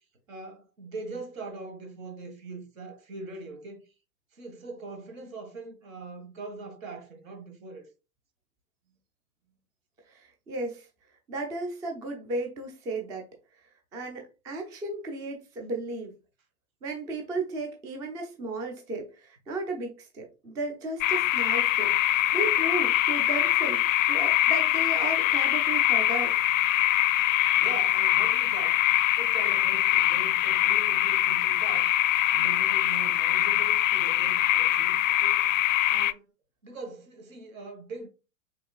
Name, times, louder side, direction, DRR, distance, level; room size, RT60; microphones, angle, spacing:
voice 1, 0.3-3.8 4.3-7.8 27.5-28.8 29.2-31.9 32.3-35.4 35.9-36.2 36.6-38.1, right 3 dB, 65° right, 1.4 m, -41 dB
voice 2, 10.1-10.9 11.3-13.3 13.9-16.1 16.8-23.8 24.1-26.3, right 2 dB, 10° right, 0.3 m, -34 dB
sound 1, 21.0-36.1, left 13 dB, 65° left, 0.5 m, -23 dB
5.1 x 3.2 x 2.3 m
figure-of-eight pair, 105°, 43 cm